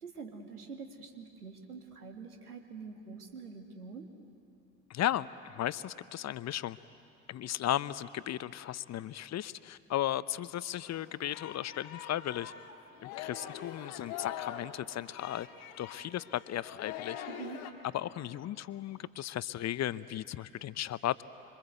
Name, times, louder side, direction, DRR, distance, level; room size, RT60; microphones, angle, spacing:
voice 1, 0.0-4.1 17.3-17.6, right 5 dB, 90° right, 4 dB, 2.1 m, -45 dB
voice 2, 4.9-6.8 7.3-12.5 13.0-15.5 15.8-17.2 17.9-21.2, left 12 dB, 40° left, 16 dB, 0.7 m, -35 dB
Singing, 10.8-17.7, left 10 dB, 70° left, 1.8 m, -44 dB
26.5 x 25.0 x 8.1 m, 2.7 s
hypercardioid pair, 60°, 44 cm